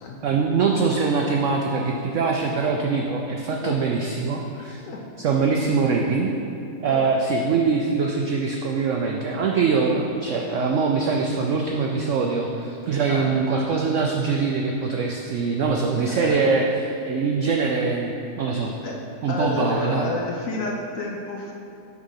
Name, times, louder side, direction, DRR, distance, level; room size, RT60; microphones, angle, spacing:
voice 1, 0.2-4.8 5.2-6.3 6.8-18.7 19.2-20.1, right 4 dB, 80° right, 1 dB, 0.6 m, -23 dB
voice 2, 16.1-16.4 18.8-19.0 19.3-21.5, left 3 dB, 65° left, 0 dB, 0.9 m, -30 dB
6.1 x 5.0 x 5.7 m, 2.6 s
omnidirectional pair, 1.9 m